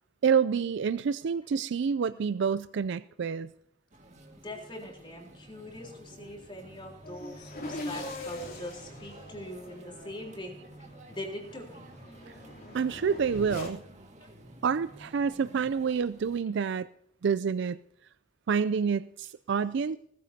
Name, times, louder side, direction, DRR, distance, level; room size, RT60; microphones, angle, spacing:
voice 1, 0.2-3.5 12.7-13.8 14.6-16.9 17.2-17.8 18.5-20.0, right 6 dB, 65° right, 15 dB, 0.4 m, -28 dB
sound 1, 3.9-16.4, right 1 dB, 40° right, 1.9 m, -51 dB
voice 2, 4.4-10.6 11.1-11.8 14.2-14.3, left 1 dB, 25° left, 0 dB, 3.7 m, -42 dB
sound 2, 7.0-13.7, left 1 dB, 50° left, 3.3 m, -42 dB
20.0 x 14.5 x 2.8 m, 0.72 s
head